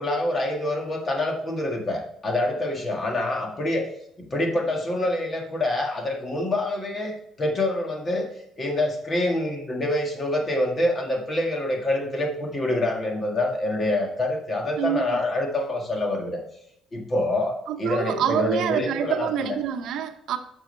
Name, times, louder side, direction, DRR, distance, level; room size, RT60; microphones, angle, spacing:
voice 1, 0.0-3.9 4.2-8.3 8.6-16.4 16.9-19.6, left 1 dB, 25° left, 1.7 m, -26 dB
voice 2, 14.8-15.2 17.7-20.4, right 9 dB, 65° right, 0.8 m, -26 dB
10.5 x 6.3 x 3.3 m
cardioid pair, 155°, 0 cm